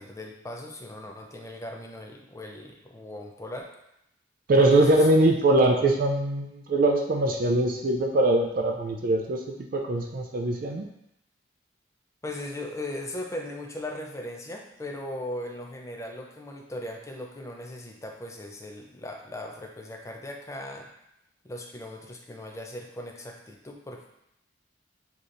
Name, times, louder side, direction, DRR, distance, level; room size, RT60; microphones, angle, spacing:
voice 1, 0.0-3.7 4.6-5.1 12.2-20.9 21.4-24.1, left 1 dB, 15° left, 2 dB, 0.5 m, -38 dB
voice 2, 4.5-9.4 9.7-10.9, right 2 dB, 50° right, 2 dB, 0.4 m, -22 dB
6.7 x 2.9 x 2.5 m, 0.80 s
head